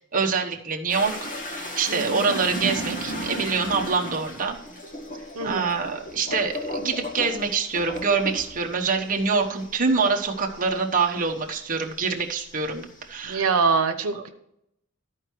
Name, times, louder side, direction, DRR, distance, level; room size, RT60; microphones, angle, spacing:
voice 1, 0.1-4.6 5.4-13.5 14.1-14.2, right 5 dB, 40° right, 1 dB, 1.1 m, -25 dB
sound 1, 0.9-11.8 12.2-13.3, equal, 40° left, 1.9 m, -35 dB
voice 2, 1.9-2.2 5.3-5.7 13.2-14.3, right 4 dB, 85° right, 6 dB, 0.9 m, -24 dB
13.0 x 4.6 x 4.6 m, 0.78 s
head